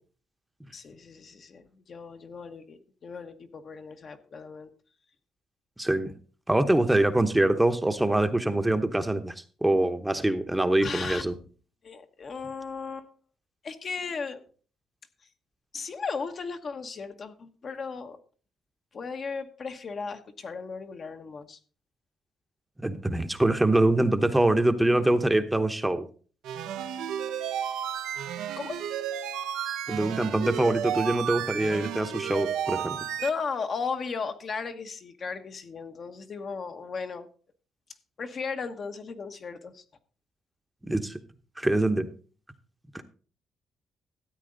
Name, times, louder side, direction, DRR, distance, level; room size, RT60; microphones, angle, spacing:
voice 1, 0.7-4.7 10.8-11.4 11.8-13.1 13.6-14.4 15.7-18.2 18.9-21.6 28.6-28.8 33.2-37.3 38.2-39.8, left 5 dB, 50° left, 6 dB, 1.2 m, -36 dB
voice 2, 5.8-6.1 6.5-9.3 9.6-11.3 22.8-26.1 29.9-33.0 40.8-41.2 41.6-42.1 42.9-43.0, right 1 dB, 10° right, 8 dB, 0.9 m, -24 dB
sound 1, 26.4-33.3, right 9 dB, 90° right, 0.9 m, -32 dB
13.5 x 8.4 x 3.9 m, 0.40 s
cardioid pair, 90°, 0 cm